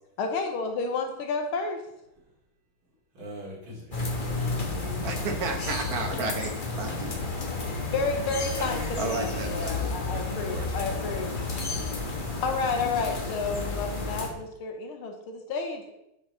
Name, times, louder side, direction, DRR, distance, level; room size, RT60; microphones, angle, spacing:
voice 1, 0.2-1.8 7.9-11.3 12.4-15.9, left 4 dB, 80° left, 1.8 m, -31 dB
voice 2, 3.1-5.4, equal, 70° right, 3.5 m, -42 dB
sound 1, 3.9-14.3, left 3 dB, 35° left, 0.9 m, -31 dB
voice 3, 5.0-7.4 8.6-10.7, right 3 dB, 50° right, 1.3 m, -34 dB
11.0 x 5.2 x 3.9 m
omnidirectional pair, 2.4 m